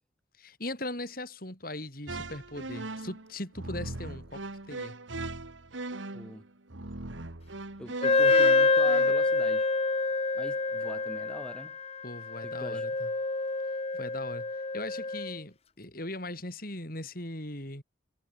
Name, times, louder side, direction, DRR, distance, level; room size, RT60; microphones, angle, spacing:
voice 1, 0.4-5.0 12.0-13.1 13.9-17.8, left 1 dB, 50° left, 7.5 m, -39 dB
sound 1, 2.1-9.1, right 2 dB, 80° right, 2.0 m, -39 dB
voice 2, 6.1-6.5 7.8-9.7 10.3-11.8 12.4-12.9, equal, 5° left, 6.3 m, -43 dB
Wind instrument woodwind instrument, 8.0-15.4, left 3 dB, 30° left, 1.0 m, -27 dB
head